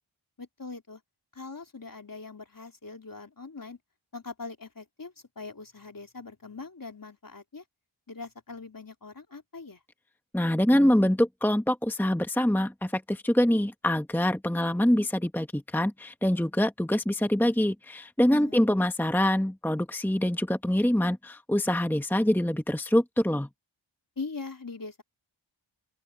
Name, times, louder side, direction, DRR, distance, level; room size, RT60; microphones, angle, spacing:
voice 1, 0.4-1.0 1.3-3.8 4.1-7.6 8.1-9.8 18.3-18.6 24.2-25.0, left 4 dB, 45° left, 3.5 m, -41 dB
voice 2, 10.3-23.5, left 1 dB, 5° left, 1.2 m, -25 dB
open air
wide cardioid pair, 50°, 48 cm